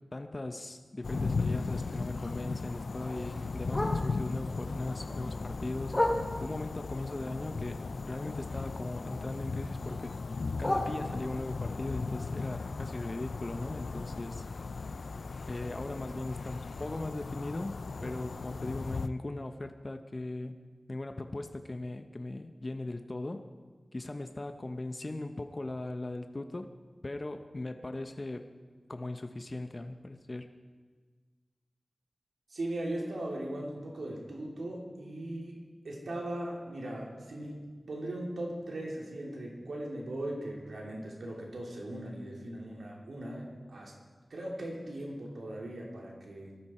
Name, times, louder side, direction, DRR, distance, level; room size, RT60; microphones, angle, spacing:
voice 1, 0.1-6.0 6.4-10.1 10.6-14.5 15.5-17.8 18.0-20.6 20.9-23.4 23.9-26.7 27.0-28.4 28.9-30.5, left 2 dB, 45° left, 7 dB, 0.9 m, -38 dB
sound 1, 1.0-19.1, left 4 dB, 80° left, 0.4 m, -37 dB
Bark, 1.2-4.4 4.8-6.7 7.1-9.0 9.2-11.6 12.0-15.9 16.3-16.4 16.7-17.0 17.5-17.6 17.9-18.0 18.5-18.6, left 1 dB, 25° left, 2.9 m, -38 dB
voice 2, 32.5-35.6 35.8-43.9 44.3-46.5, right 1 dB, 90° right, -2 dB, 2.9 m, -39 dB
19.5 x 13.5 x 4.4 m, 1.5 s
cardioid pair, 45°, 0 cm